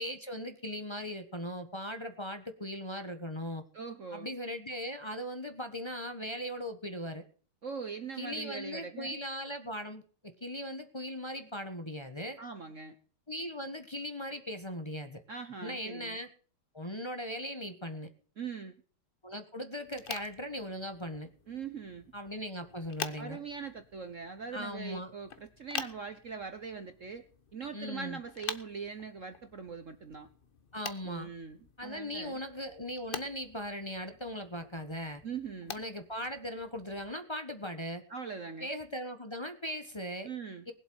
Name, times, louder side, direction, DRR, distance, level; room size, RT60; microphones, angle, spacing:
voice 1, 0.0-3.6 4.1-7.2 8.2-12.4 13.3-15.2 15.6-16.3 16.7-18.1 19.2-21.3 22.1-23.4 24.5-25.1 27.7-28.2 30.7-31.3 31.8-35.2 35.7-38.0 38.6-40.3 40.7-40.8, equal, 20° left, 6 dB, 1.0 m, -39 dB
voice 2, 3.7-4.3 7.6-9.2 12.4-12.9 15.3-16.2 18.4-18.8 21.5-22.1 23.2-27.2 27.5-30.3 31.0-32.4 35.2-35.7 38.1-38.7 40.2-40.6, right 5 dB, 50° right, 9 dB, 1.1 m, -41 dB
sound 1, 19.8-37.1, left 6 dB, 45° left, 0.7 m, -47 dB
20.0 x 7.8 x 6.2 m, 0.42 s
omnidirectional pair, 2.3 m